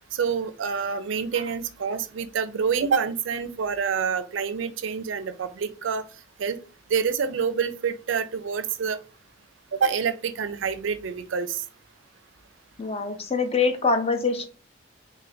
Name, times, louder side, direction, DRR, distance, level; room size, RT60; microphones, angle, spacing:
voice 1, 0.1-6.0 6.4-6.6 6.9-9.0 9.7-11.6, right 6 dB, 85° right, 0.4 m, -27 dB
voice 2, 12.8-14.5, left 4 dB, 30° left, 0.5 m, -24 dB
3.9 x 2.2 x 3.2 m
head